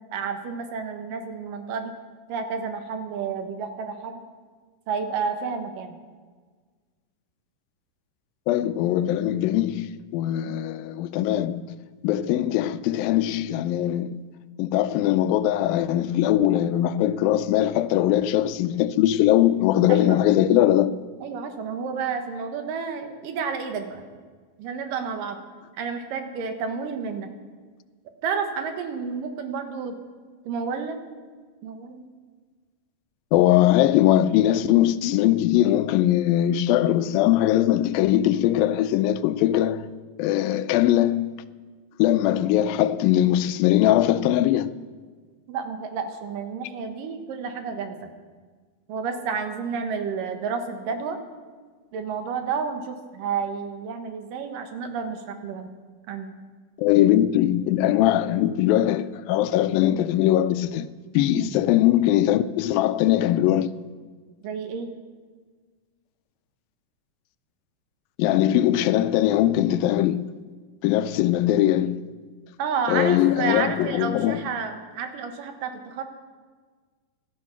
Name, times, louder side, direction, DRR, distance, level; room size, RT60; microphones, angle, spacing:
voice 1, 0.1-1.9 2.3-4.2 4.9-6.0 10.5-10.6 19.9-20.2 21.2-24.0 24.6-25.4 25.8-27.3 28.2-30.0 30.5-31.0 31.6-32.1 45.5-48.1 48.9-51.2 51.9-55.7 56.1-56.3 61.3-61.5 64.4-65.0 72.6-76.0, right 6 dB, 70° right, 2.8 m, -30 dB
voice 2, 8.5-11.8 12.0-14.2 14.6-21.0 33.3-39.9 40.2-41.3 42.0-44.7 56.8-60.9 61.1-63.7 68.2-70.3 70.8-72.0 72.9-74.4, left 13 dB, 85° left, 2.3 m, -21 dB
16.5 x 13.0 x 5.8 m
omnidirectional pair, 4.1 m